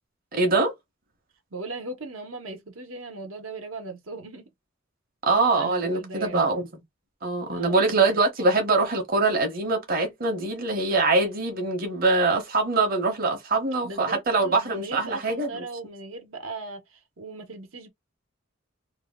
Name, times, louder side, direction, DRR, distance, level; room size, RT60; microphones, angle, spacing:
voice 1, 0.3-0.7 5.3-6.7 7.2-15.5, right 3 dB, 45° right, 0.9 m, -23 dB
voice 2, 1.5-4.5 5.6-6.7 7.5-8.2 13.8-17.9, right 3 dB, 80° right, 1.0 m, -38 dB
2.8 x 2.2 x 3.5 m
head